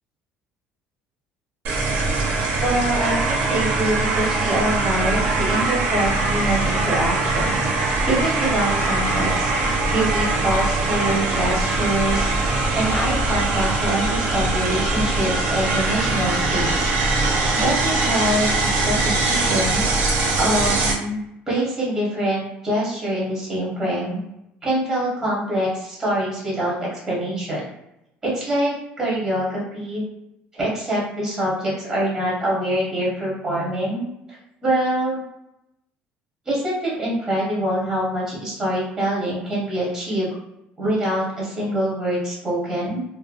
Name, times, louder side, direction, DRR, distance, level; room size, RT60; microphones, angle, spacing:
sound 1, 1.6-20.9, right 3 dB, 45° right, 0.5 m, -22 dB
voice 1, 2.6-9.5 9.9-16.9 17.5-19.8 20.3-21.2 21.5-24.2 24.6-27.7 28.2-30.0 30.5-34.1 34.6-35.2 36.5-40.3 40.8-43.0, right 1 dB, 10° right, -6 dB, 0.8 m, -25 dB
2.5 x 2.1 x 2.3 m, 0.84 s
cardioid pair, 175°, 4 cm